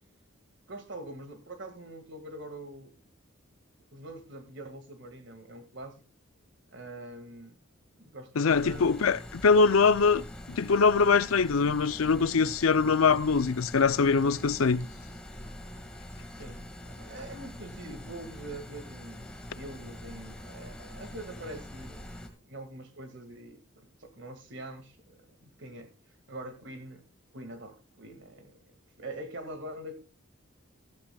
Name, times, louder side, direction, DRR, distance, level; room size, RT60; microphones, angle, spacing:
voice 1, 0.7-3.1 3.9-6.0 6.7-7.6 8.0-9.2 16.4-25.9 26.3-27.0 27.3-30.0, right 1 dB, 60° right, 2.0 m, -44 dB
voice 2, 8.4-14.9, left 5 dB, 90° left, 0.5 m, -23 dB
sound 1, 8.5-22.3, left 1 dB, 5° left, 1.9 m, -44 dB
14.5 x 14.0 x 2.3 m
head